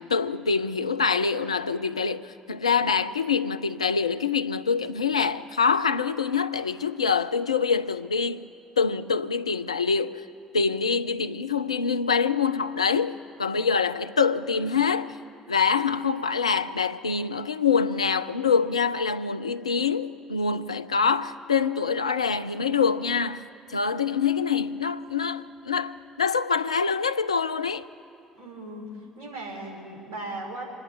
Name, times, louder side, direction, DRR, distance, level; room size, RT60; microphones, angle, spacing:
voice 1, 0.0-8.5 8.8-10.2 10.5-15.2 15.5-27.9, left 5 dB, 85° left, 0.5 m, -25 dB
voice 2, 28.3-30.7, right 2 dB, 70° right, 4.8 m, -37 dB
27.5 x 10.5 x 4.6 m
figure-of-eight pair, 50°, 3 cm